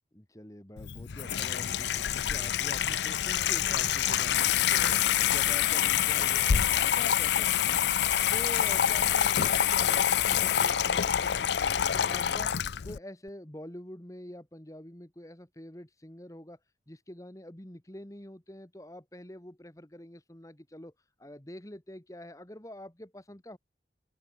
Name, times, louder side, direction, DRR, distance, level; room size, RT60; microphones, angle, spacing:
voice 1, 0.1-5.0 5.3-7.8 8.3-12.5 12.8-16.6 16.9-20.9 21.2-23.6, left 1 dB, 20° left, 1.6 m, -46 dB
Water tap faucet / Sink (filling or washing), 0.8-13.0, left 9 dB, 75° left, 0.5 m, -26 dB
open air
head